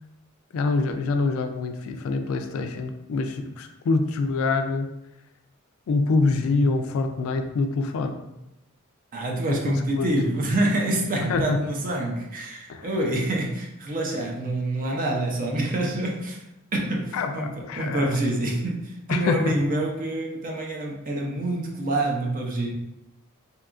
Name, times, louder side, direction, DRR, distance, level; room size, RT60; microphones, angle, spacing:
voice 1, 0.5-4.9 5.9-8.2 9.5-10.1 11.3-11.6 12.7-12.9 17.1-18.2 19.1-19.6, left 3 dB, 70° left, 7 dB, 0.3 m, -25 dB
voice 2, 9.1-16.4 16.7-22.7, right 1 dB, 40° right, 0 dB, 0.5 m, -26 dB
2.8 x 2.3 x 2.4 m, 0.88 s
head